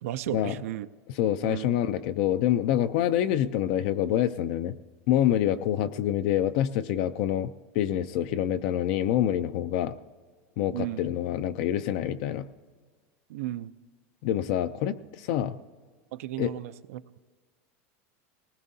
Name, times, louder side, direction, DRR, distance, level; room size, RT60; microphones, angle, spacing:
voice 1, 0.0-0.9 1.4-1.7 10.7-11.0 13.3-13.7 16.1-17.0, right 14 dB, 85° right, 12 dB, 0.5 m, -34 dB
voice 2, 1.1-4.7 5.1-10.0 10.6-12.5 14.2-15.6 16.4-16.5, left 11 dB, 50° left, 11 dB, 0.4 m, -26 dB
19.5 x 19.0 x 2.7 m, 1.5 s
supercardioid pair, 170°, 8 cm